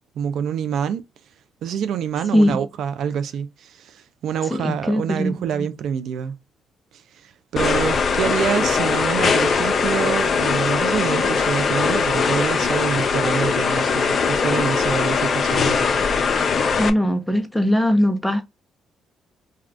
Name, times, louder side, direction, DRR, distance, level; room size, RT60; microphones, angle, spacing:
voice 1, 0.2-1.0 1.6-6.4 7.1-16.0, right 8 dB, 75° right, 0.3 m, -26 dB
voice 2, 4.6-5.7 16.8-18.4, equal, 5° left, 0.7 m, -20 dB
sound 1, 7.6-16.9, left 5 dB, 50° left, 0.5 m, -20 dB
2.5 x 2.3 x 3.2 m
cardioid pair, 90°, 0 cm